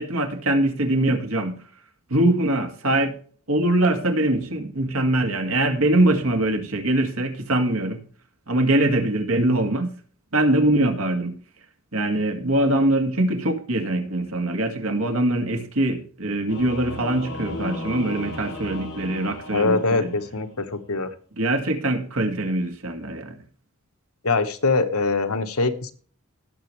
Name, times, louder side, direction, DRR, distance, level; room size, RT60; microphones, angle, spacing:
voice 1, 0.0-1.6 2.1-3.2 3.5-8.0 8.5-9.9 10.3-11.4 11.9-20.1 21.4-23.4, right 1 dB, 80° right, 5 dB, 2.2 m, -22 dB
Singing / Musical instrument, 16.5-20.6, left 1 dB, 55° left, 3.6 m, -35 dB
voice 2, 19.5-21.1 24.2-25.9, left 3 dB, 80° left, 8 dB, 1.3 m, -23 dB
18.0 x 7.0 x 3.3 m, 0.43 s
head